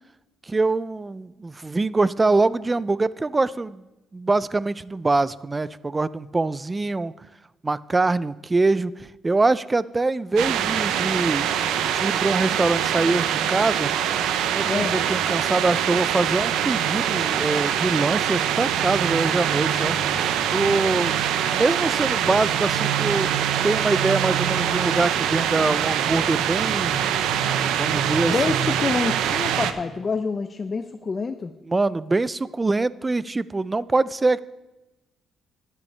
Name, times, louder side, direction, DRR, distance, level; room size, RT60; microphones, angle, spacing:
voice 1, 0.5-3.8 4.1-7.1 7.6-11.5 11.9-13.9 14.5-20.0 20.5-21.2 21.5-23.3 23.6-27.0 27.7-28.5 31.7-34.4, right 3 dB, 20° right, 18 dB, 0.3 m, -24 dB
sound 1, 10.4-29.7, right 9 dB, 90° right, 0.6 m, -24 dB
voice 2, 14.6-15.0 28.3-31.5, left 4 dB, 35° left, 9 dB, 0.5 m, -27 dB
12.5 x 9.9 x 3.3 m, 1.0 s
cardioid pair, 90°, 0 cm